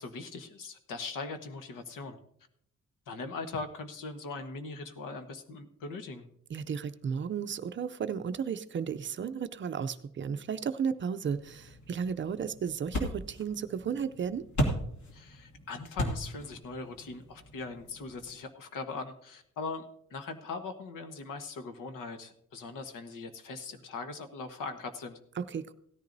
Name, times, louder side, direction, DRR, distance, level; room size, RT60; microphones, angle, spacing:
voice 1, 0.0-2.2 3.1-6.3 15.1-19.8 20.1-25.2, left 4 dB, 80° left, 7 dB, 1.3 m, -40 dB
voice 2, 6.5-14.4 25.4-25.7, right 7 dB, 40° right, 10 dB, 0.5 m, -34 dB
sound 1, 11.2-18.3, equal, 60° left, 2.4 m, -37 dB
17.0 x 13.5 x 2.6 m, 0.71 s
wide cardioid pair, 180°, 32 cm